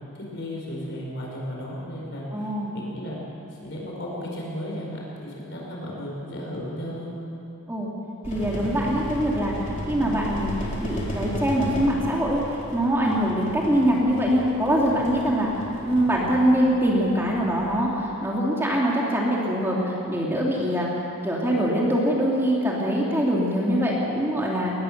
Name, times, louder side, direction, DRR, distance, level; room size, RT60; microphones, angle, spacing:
voice 1, 0.1-3.2 3.6-7.1, equal, 55° left, -3 dB, 5.1 m, -34 dB
voice 2, 2.3-2.8 7.7-7.9 8.3-9.5 9.9-10.5 10.8-12.4 12.7-15.5 15.8-20.9 21.2-24.7, equal, 10° right, -4 dB, 2.8 m, -23 dB
sound 1, 8.2-17.8, equal, 35° left, 3.9 m, -34 dB
22.5 x 19.5 x 6.7 m, 2.9 s
head